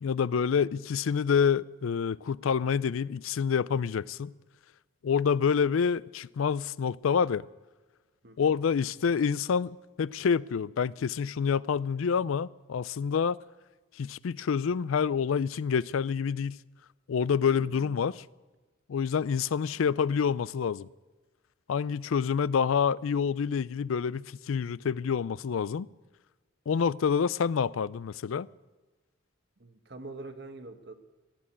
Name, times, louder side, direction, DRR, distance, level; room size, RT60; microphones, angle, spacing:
voice 1, 0.0-4.3 5.0-7.5 8.4-13.4 14.0-16.6 17.1-18.2 18.9-20.9 21.7-25.9 26.7-28.5, left 6 dB, 85° left, 0.4 m, -27 dB
voice 2, 8.2-8.5 17.5-17.9 19.5-19.8 29.6-30.9, right 2 dB, 55° right, 1.2 m, -45 dB
15.0 x 11.0 x 8.8 m
head